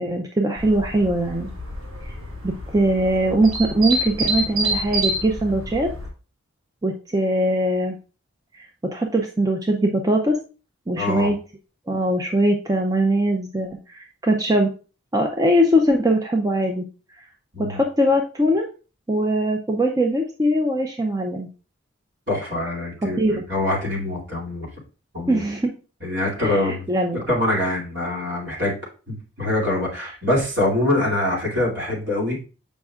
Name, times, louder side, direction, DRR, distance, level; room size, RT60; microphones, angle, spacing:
voice 1, 0.0-1.5 2.0-2.1 2.4-5.9 6.8-8.0 8.5-10.4 10.9-11.4 11.9-14.7 15.1-16.9 17.2-17.3 17.6-18.7 19.1-21.5 23.2-23.4 25.3-25.7 26.4-27.2, right 1 dB, 15° right, 2 dB, 0.5 m, -21 dB
sound 1, 0.6-6.1, right 1 dB, 85° right, 1.8 m, -28 dB
voice 2, 10.9-11.3 17.5-17.8 22.3-24.7 25.1-25.4 26.0-26.8 27.3-28.8 29.1-32.4, left 1 dB, 55° right, -3 dB, 2.6 m, -24 dB
7.7 x 5.2 x 2.4 m, 0.35 s
head